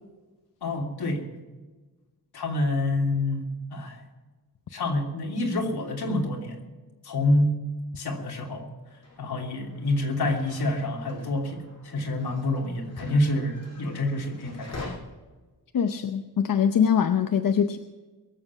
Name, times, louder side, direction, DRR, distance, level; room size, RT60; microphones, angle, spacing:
voice 1, 0.6-1.2 2.3-4.0 4.7-6.6 7.0-7.6 8.0-8.7 9.2-15.0, left 1 dB, 75° left, 1 dB, 3.1 m, -27 dB
sound 1, 9.0-14.9, left 2 dB, 40° left, 5.4 m, -46 dB
voice 2, 15.7-17.8, left 7 dB, 60° left, 8 dB, 0.8 m, -23 dB
23.0 x 7.6 x 7.3 m, 1.3 s
wide cardioid pair, 165°, 38 cm